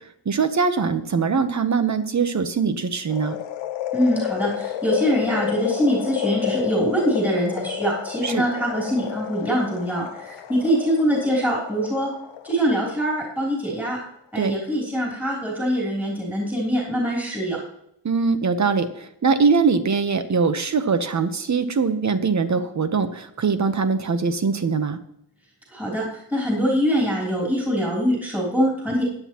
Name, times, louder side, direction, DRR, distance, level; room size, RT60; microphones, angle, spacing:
voice 1, 0.3-3.4 8.2-8.4 14.4-14.5 18.0-25.0, right 5 dB, 40° right, 10 dB, 1.0 m, -22 dB
sound 1, 3.1-13.4 13.8-13.9, left 11 dB, 85° left, 0.9 m, -30 dB
voice 2, 3.9-12.1 12.4-14.0 14.3-17.6 25.7-29.0, equal, 5° right, -4 dB, 3.2 m, -23 dB
15.5 x 10.0 x 3.0 m, 0.77 s
wide cardioid pair, 170°, 45 cm